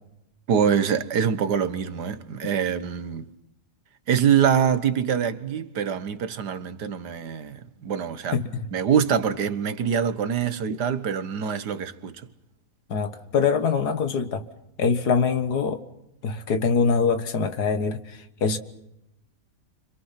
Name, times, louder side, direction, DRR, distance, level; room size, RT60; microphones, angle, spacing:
voice 1, 0.5-3.3 4.1-8.4 8.7-12.2, right 8 dB, 75° right, 1.9 m, -24 dB
voice 2, 8.3-8.7 12.9-14.4 14.8-15.8 16.2-18.6, left 5 dB, 70° left, 2.1 m, -24 dB
29.5 x 26.5 x 5.9 m
omnidirectional pair, 1.8 m